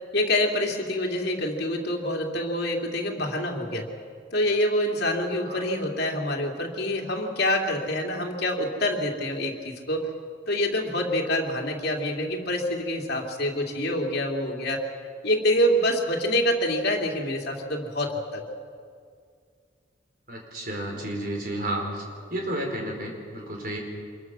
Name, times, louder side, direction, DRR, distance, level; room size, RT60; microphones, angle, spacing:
voice 1, 0.1-3.9 4.3-10.1 10.5-14.9 15.2-18.5, left 1 dB, 55° left, 0 dB, 2.8 m, -26 dB
voice 2, 20.3-22.0 22.3-23.8, right 1 dB, 50° right, 1 dB, 4.5 m, -31 dB
26.0 x 22.0 x 6.2 m, 2.2 s
head